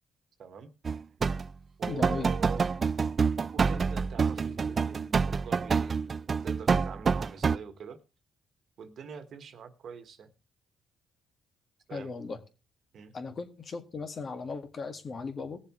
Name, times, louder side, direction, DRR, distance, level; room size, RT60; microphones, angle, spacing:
voice 1, 0.4-0.7 1.8-2.7 3.5-8.0 8.8-10.3 11.9-12.1 12.9-13.1, right 6 dB, 60° right, 1.5 m, -44 dB
sound 1, 0.8-1.5 1.8-7.6, right 5 dB, 40° right, 0.4 m, -27 dB
voice 2, 1.9-2.3 11.9-12.4 13.1-15.6, left 4 dB, 45° left, 1.8 m, -37 dB
19.0 x 7.3 x 3.1 m
cardioid pair, 90°, 0 cm